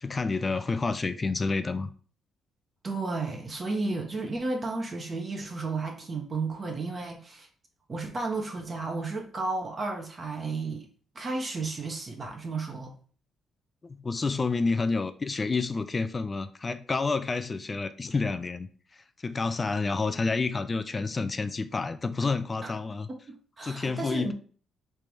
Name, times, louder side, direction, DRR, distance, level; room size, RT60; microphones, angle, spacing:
voice 1, 0.0-1.9 13.8-18.7 19.2-23.1 23.6-24.3, left 4 dB, 30° left, 10 dB, 0.4 m, -29 dB
voice 2, 2.8-7.5 7.9-10.9 11.1-12.9 22.6-22.7 23.3-24.3, right 3 dB, 35° right, 2 dB, 0.9 m, -33 dB
3.4 x 2.9 x 4.7 m, 0.42 s
cardioid pair, 90°, 0 cm